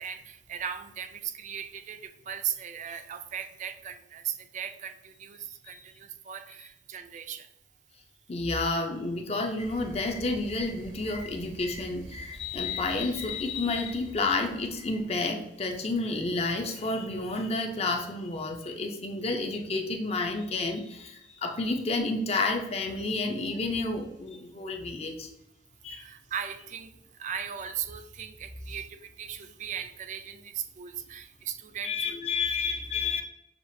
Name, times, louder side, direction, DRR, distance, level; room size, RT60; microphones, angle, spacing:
voice 1, 0.0-7.5 25.9-26.9 27.2-32.2, right 8 dB, 40° right, 9 dB, 0.4 m, -38 dB
voice 2, 8.3-25.3 25.8-26.0 31.8-33.2, left 3 dB, 35° left, 3 dB, 0.6 m, -30 dB
sound 1, 9.6-15.0, left 1 dB, 70° right, 0.9 m, -44 dB
6.7 x 2.4 x 2.6 m, 0.87 s
head